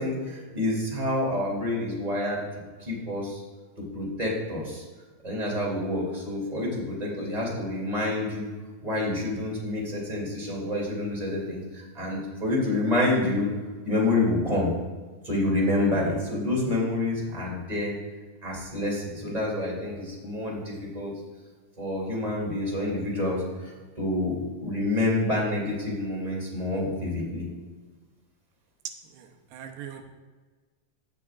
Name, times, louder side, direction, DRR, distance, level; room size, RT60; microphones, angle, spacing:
voice 1, 0.0-2.4 2.8-3.4 3.9-4.8 5.2-8.5 8.8-13.5 13.8-14.7 15.2-17.9 18.4-21.1 21.8-23.7 24.0-24.4 24.6-27.4, left 2 dB, 10° right, -4 dB, 2.2 m, -28 dB
voice 2, 29.1-30.0, right 9 dB, 85° right, 5 dB, 2.8 m, -42 dB
16.0 x 7.6 x 2.5 m, 1.4 s
omnidirectional pair, 4.4 m